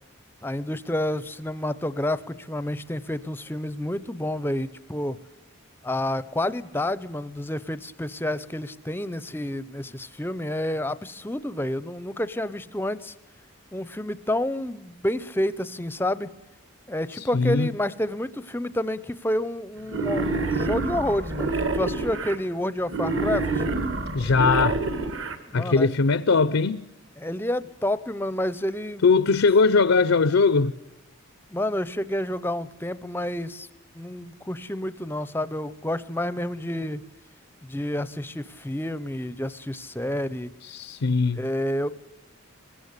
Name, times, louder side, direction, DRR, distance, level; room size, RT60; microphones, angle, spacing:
voice 1, 0.4-5.2 5.8-13.1 13.7-16.3 16.9-23.7 25.5-25.9 27.2-29.1 31.5-33.7 33.9-37.0 37.6-40.5 41.3-41.9, left 1 dB, 10° left, 0.6 m, -29 dB
voice 2, 17.1-17.7 24.1-24.8 25.5-26.9 29.0-30.8 40.6-41.4, left 4 dB, 70° left, 0.6 m, -20 dB
Wild animals, 19.9-22.4 22.9-25.4, right 3 dB, 60° right, 2.2 m, -27 dB
20.5 x 16.5 x 8.2 m
head